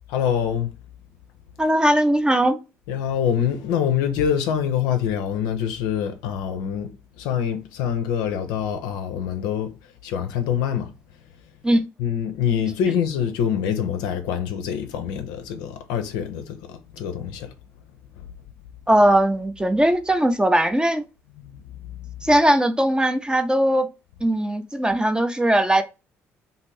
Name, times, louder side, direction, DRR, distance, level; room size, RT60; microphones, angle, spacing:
voice 1, 0.1-0.7 2.9-6.9 7.2-9.7 10.0-10.9 12.0-16.6 16.9-17.5 18.2-18.3 21.4-22.1, left 8 dB, 70° left, 0.5 m, -25 dB
voice 2, 1.6-2.6 11.6-11.9 18.9-21.0 22.2-23.9 24.2-25.8, right 1 dB, 10° right, 0.5 m, -19 dB
2.6 x 2.5 x 3.1 m
figure-of-eight pair, 45°, 7 cm